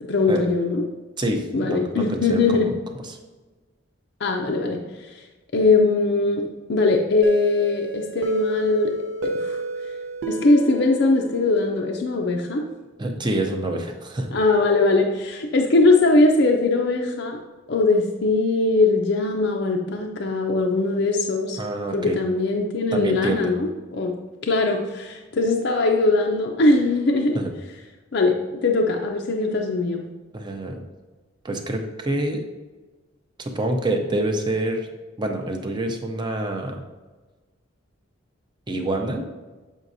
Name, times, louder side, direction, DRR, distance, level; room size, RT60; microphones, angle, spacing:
voice 1, 0.1-0.8 1.5-2.7 4.2-5.2 5.5-8.9 9.2-9.6 10.3-12.6 14.3-17.4 17.7-21.6 21.9-24.1 24.4-27.4 28.1-28.4 28.6-30.0, left 3 dB, 60° left, 1 dB, 0.5 m, -21 dB
voice 2, 1.2-2.7 3.0-3.2 13.0-14.4 21.6-22.2 22.9-23.5 27.3-27.5 30.3-30.8 31.4-32.5 33.4-34.9 35.2-36.8 38.7-39.3, right 1 dB, 25° right, 3 dB, 0.6 m, -27 dB
sound 1, 7.2-11.9, right 1 dB, 75° right, 0.7 m, -30 dB
7.3 x 5.0 x 2.6 m, 1.2 s
head